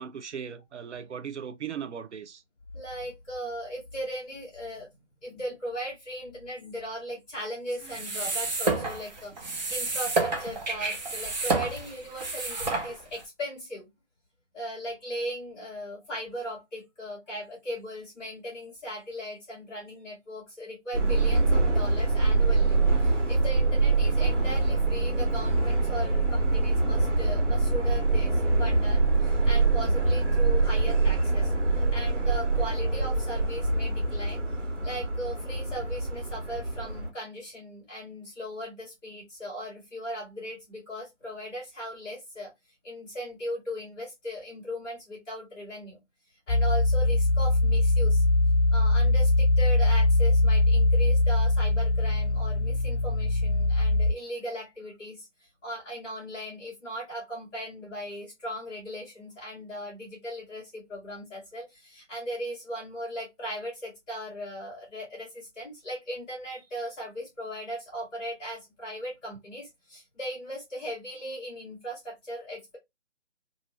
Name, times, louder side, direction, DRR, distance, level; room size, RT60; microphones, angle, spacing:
voice 1, 0.0-2.4, right 7 dB, 70° right, 0.5 m, -38 dB
voice 2, 2.7-4.9 5.2-13.9 14.5-34.4 34.8-42.5 42.8-46.0 46.5-48.2 48.7-55.3 55.6-72.8, equal, 5° left, 0.6 m, -38 dB
sound 1, 7.8-13.2, right 3 dB, 35° right, 0.8 m, -30 dB
Subway metro underground, 20.9-37.1, right 3 dB, 90° right, 1.5 m, -24 dB
sound 2, 46.5-54.1, left 2 dB, 75° left, 0.5 m, -22 dB
2.7 x 2.5 x 2.9 m
figure-of-eight pair, 155°, 36 cm